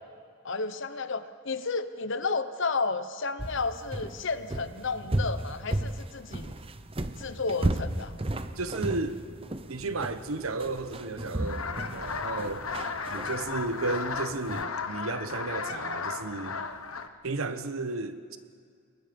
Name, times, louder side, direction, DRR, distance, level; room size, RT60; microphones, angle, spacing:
voice 1, 0.4-6.6 7.2-8.2 12.8-12.9, left 4 dB, 60° left, 1.0 m, -32 dB
sound 1, 3.4-14.6, right 1 dB, 25° right, 0.8 m, -35 dB
voice 2, 8.6-9.2 9.7-12.7 13.1-16.6 17.2-18.4, right 3 dB, 80° right, 1.2 m, -33 dB
sound 2, 11.4-17.1, left 5 dB, 90° left, 1.2 m, -35 dB
29.5 x 22.0 x 5.4 m
head